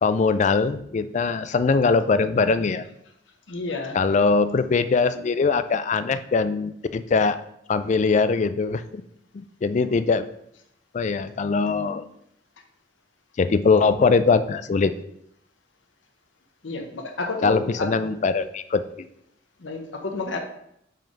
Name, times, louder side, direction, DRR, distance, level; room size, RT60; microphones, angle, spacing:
voice 1, 0.0-2.9 3.9-7.4 7.7-9.0 9.3-10.2 10.9-12.1 13.4-14.9 17.4-18.8, left 4 dB, 40° left, 12 dB, 0.3 m, -21 dB
voice 2, 3.5-4.0 16.6-17.9 19.6-20.4, left 3 dB, 85° left, 3 dB, 0.9 m, -30 dB
5.6 x 3.6 x 5.2 m, 0.76 s
head